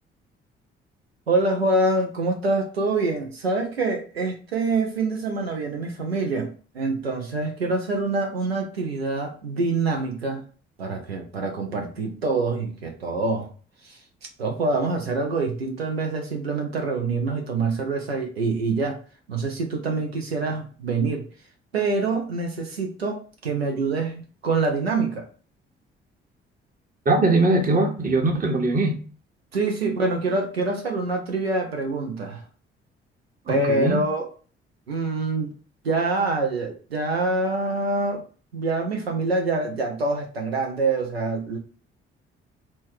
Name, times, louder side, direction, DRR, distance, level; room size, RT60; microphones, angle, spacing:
voice 1, 1.3-10.4 10.8-13.5 13.8-14.0 14.4-19.0 19.3-21.3 21.7-25.2 29.5-32.4 33.5-34.3 34.9-35.5 35.8-38.2 38.5-41.6, right 3 dB, 90° right, 0.5 m, -25 dB
voice 2, 27.1-29.0 33.5-34.0, right 2 dB, 30° right, 1.0 m, -21 dB
4.1 x 2.2 x 4.4 m
figure-of-eight pair, 45°, 30 cm